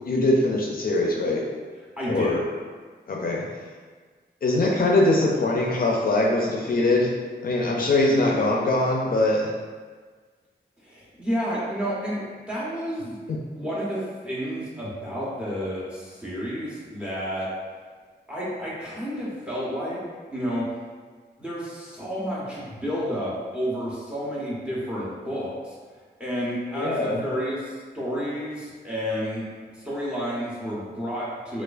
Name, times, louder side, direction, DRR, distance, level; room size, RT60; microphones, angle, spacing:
voice 1, 0.0-1.4 2.1-2.4 3.1-3.4 4.4-7.1 7.4-9.5 13.3-13.4 26.7-27.2, left 2 dB, 55° left, -2 dB, 0.4 m, -22 dB
voice 2, 2.0-2.3 10.8-13.2 13.5-17.5 18.3-20.1 20.3-20.7 21.4-25.8 26.2-29.5 29.7-31.6, equal, 5° right, -7 dB, 0.8 m, -30 dB
4.4 x 2.3 x 2.5 m, 1.5 s
wide cardioid pair, 165°, 18 cm